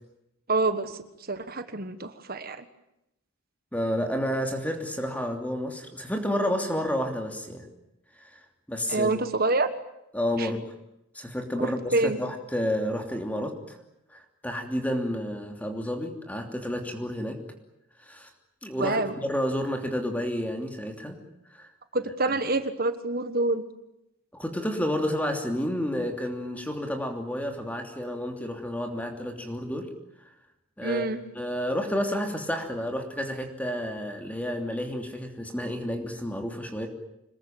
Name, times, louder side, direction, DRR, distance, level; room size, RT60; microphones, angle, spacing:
voice 1, 0.5-1.0 1.3-2.6 8.9-9.7 10.4-10.5 11.6-12.2 18.8-19.1 21.9-23.6 30.8-31.2, right 2 dB, 40° right, 10 dB, 1.4 m, -27 dB
voice 2, 3.7-7.7 8.2-8.4 8.7-9.1 10.1-10.7 11.1-13.8 14.1-17.4 18.0-18.3 18.6-21.2 21.5-21.7 22.2-22.3 24.3-29.9 30.8-31.1 31.3-36.9, equal, 5° left, 3 dB, 3.0 m, -30 dB
26.5 x 21.0 x 9.0 m, 0.84 s
head